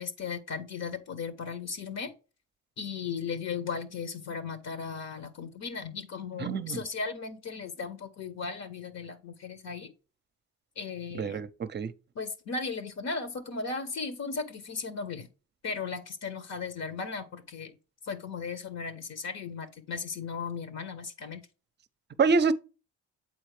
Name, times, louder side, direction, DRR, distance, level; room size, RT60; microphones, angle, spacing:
voice 1, 0.0-2.1 2.8-9.9 10.8-11.4 12.1-15.3 15.6-17.7 18.0-21.4, left 5 dB, 60° left, 1.0 m, -36 dB
voice 2, 6.4-6.8 11.1-11.9 22.2-22.5, right 4 dB, 35° right, 0.6 m, -26 dB
7.8 x 4.2 x 3.3 m
cardioid pair, 90°, 30 cm